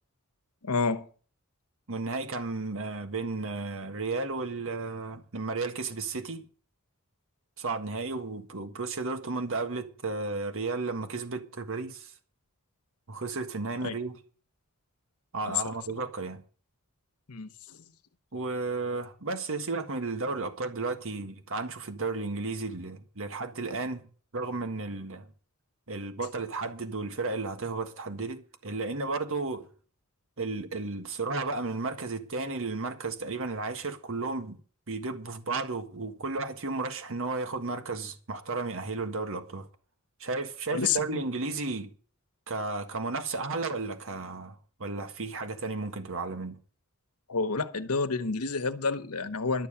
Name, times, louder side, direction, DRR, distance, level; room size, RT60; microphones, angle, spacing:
voice 1, 0.6-1.1 13.8-13.9 15.5-15.7 17.3-17.5 40.7-41.0 47.3-49.7, left 4 dB, 90° left, 1.1 m, -29 dB
voice 2, 1.9-6.4 7.6-12.1 13.1-14.2 15.3-16.4 18.3-24.0 24.3-25.3 25.9-29.7 30.4-34.6 34.9-39.7 40.2-41.9 42.5-46.6, right 3 dB, 65° right, 1.6 m, -33 dB
12.0 x 7.0 x 8.8 m
head